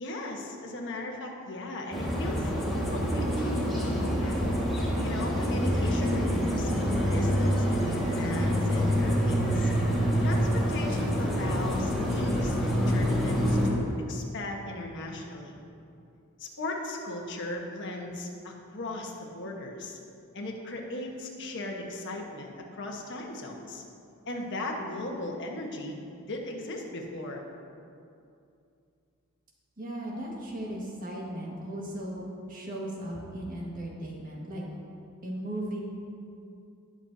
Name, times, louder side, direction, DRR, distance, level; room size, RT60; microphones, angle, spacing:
voice 1, 0.0-2.5 2.9-4.5 5.0-6.7 7.1-9.7 10.2-15.5 16.4-20.0 20.3-23.8 24.3-27.4, left 1 dB, 60° left, 0 dB, 1.3 m, -37 dB
sound 1, 1.9-13.7, equal, ahead, 1.7 m, -26 dB
voice 2, 29.8-34.6 35.2-35.8, right 1 dB, 40° right, -3 dB, 1.7 m, -36 dB
18.5 x 6.3 x 2.7 m, 2.5 s
head